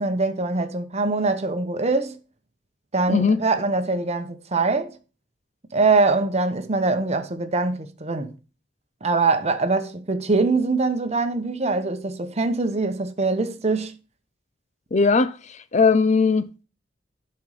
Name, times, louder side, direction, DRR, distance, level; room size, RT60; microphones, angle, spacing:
voice 1, 0.0-2.2 2.9-5.0 5.7-8.3 9.0-13.9, right 3 dB, 35° right, 0.9 m, -23 dB
voice 2, 3.1-3.4 14.9-16.6, left 4 dB, 40° left, 0.5 m, -19 dB
11.0 x 4.4 x 4.9 m
head